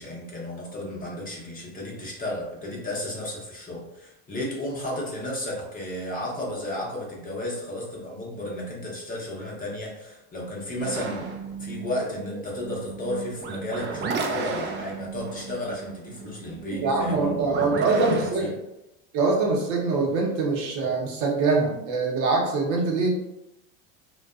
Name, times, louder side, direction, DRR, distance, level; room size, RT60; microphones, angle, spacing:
voice 1, 0.0-18.5, left 1 dB, 25° left, -3 dB, 0.7 m, -33 dB
sound 1, 10.8-18.3, right 4 dB, 35° right, 0.4 m, -34 dB
voice 2, 16.8-18.6 19.1-23.1, right 3 dB, 60° right, -1 dB, 0.8 m, -24 dB
2.5 x 2.2 x 2.3 m, 0.91 s
hypercardioid pair, 95°, 34 cm